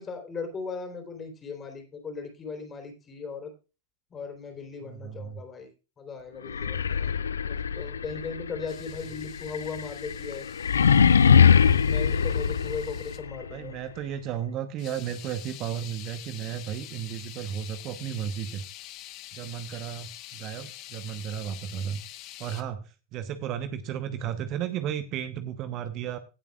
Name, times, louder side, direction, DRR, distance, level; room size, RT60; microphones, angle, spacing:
voice 1, 0.0-3.5 4.1-5.7 6.0-7.1 7.5-10.5 11.9-13.7, left 5 dB, 20° left, 5 dB, 3.8 m, -37 dB
voice 2, 4.8-5.4 13.5-18.6 19.3-22.0 22.4-26.2, right 9 dB, 35° right, 10 dB, 1.0 m, -34 dB
sound 1, 6.5-13.4, left 7 dB, 70° left, 0.5 m, -22 dB
sound 2, 8.7-13.2 14.8-22.6, left 14 dB, 40° left, 1.1 m, -46 dB
18.0 x 8.4 x 2.4 m, 0.30 s
figure-of-eight pair, 90°, 0 cm